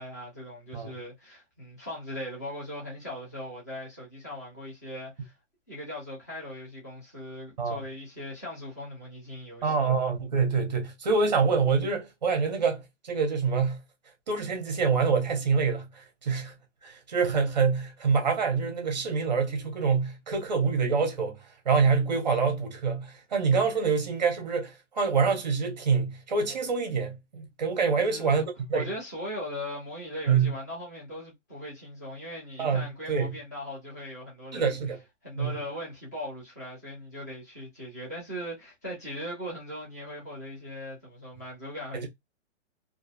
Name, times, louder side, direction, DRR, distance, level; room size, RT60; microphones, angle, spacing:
voice 1, 0.0-5.3 5.7-9.9 28.0-28.4 28.7-34.7 35.2-42.1, left 1 dB, 15° left, 0.5 m, -39 dB
voice 2, 9.6-13.8 14.3-16.5 16.8-21.4 21.7-28.9 30.3-30.5 32.6-33.4 34.5-35.0 35.4-35.6 41.9-42.1, right 5 dB, 35° right, 0.6 m, -26 dB
2.4 x 2.3 x 2.3 m
hypercardioid pair, 180°, 37 cm